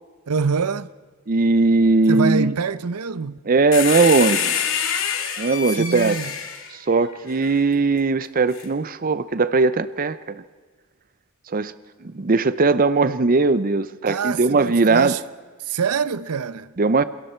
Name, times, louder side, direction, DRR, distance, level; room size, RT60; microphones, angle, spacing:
voice 1, 0.3-0.9 2.1-3.4 5.7-6.3 14.1-15.2 15.6-16.7, right 5 dB, 85° right, 0.7 m, -25 dB
voice 2, 1.3-2.5 3.5-4.5 5.4-6.2 6.9-10.4 11.5-11.7 12.0-15.1 16.8-17.0, right 3 dB, 40° right, 0.6 m, -19 dB
sound 1, 3.7-7.5 8.5-8.6, left 8 dB, 60° left, 2.7 m, -26 dB
27.5 x 21.5 x 4.4 m
head